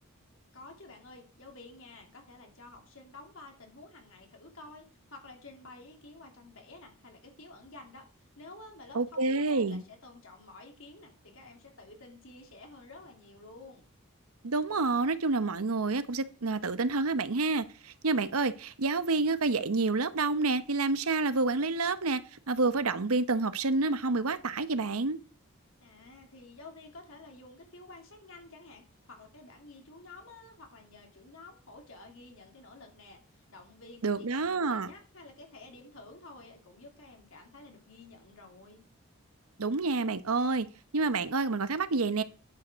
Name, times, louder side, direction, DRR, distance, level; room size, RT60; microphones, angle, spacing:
voice 1, 0.5-13.8 25.8-38.8, left 2 dB, 65° left, 2.9 m, -51 dB
voice 2, 8.9-9.8 14.4-22.2 22.5-25.2 34.0-34.9 39.6-40.7 40.9-42.2, right 3 dB, 80° right, 0.9 m, -28 dB
10.0 x 5.3 x 6.2 m
head